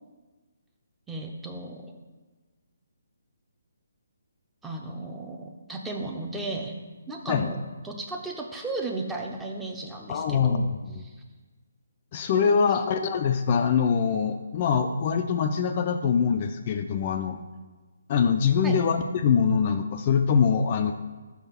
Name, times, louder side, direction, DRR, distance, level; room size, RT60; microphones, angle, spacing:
voice 1, 1.1-1.9 4.6-6.8 7.1-10.7 11.0-11.2 12.5-12.7 18.6-18.8, right 2 dB, 5° right, 1 dB, 0.6 m, -35 dB
voice 2, 10.1-11.0 12.1-17.4 18.1-20.9, left 6 dB, 35° left, 6 dB, 0.3 m, -24 dB
5.7 x 3.5 x 5.7 m, 1.3 s
figure-of-eight pair, 145°, 0 cm